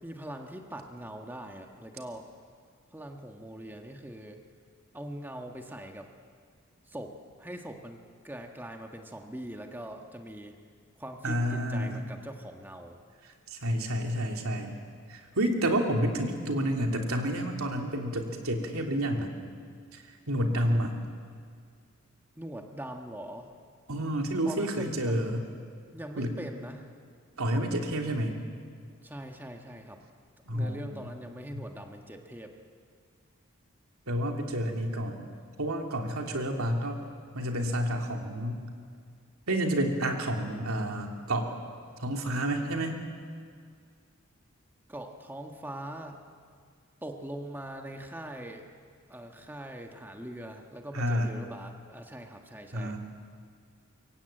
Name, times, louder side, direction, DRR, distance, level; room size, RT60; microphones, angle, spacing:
voice 1, 0.0-2.3 2.9-4.4 4.9-6.1 6.9-10.5 11.0-13.0 22.4-23.5 24.4-25.3 25.9-26.9 29.0-30.0 30.5-32.5 44.9-46.2 47.0-48.7 49.1-53.0, right 1 dB, 10° right, 3 dB, 1.3 m, -42 dB
voice 2, 11.2-12.0 13.5-14.7 15.1-19.4 19.9-20.9 23.9-25.4 26.2-26.3 27.4-28.4 30.5-30.9 34.1-35.3 35.6-37.0 37.3-38.6 39.5-41.5 42.0-43.0 50.9-51.3 52.7-53.0, equal, 85° right, 2 dB, 3.0 m, -29 dB
24.5 x 23.0 x 9.0 m, 2.1 s
head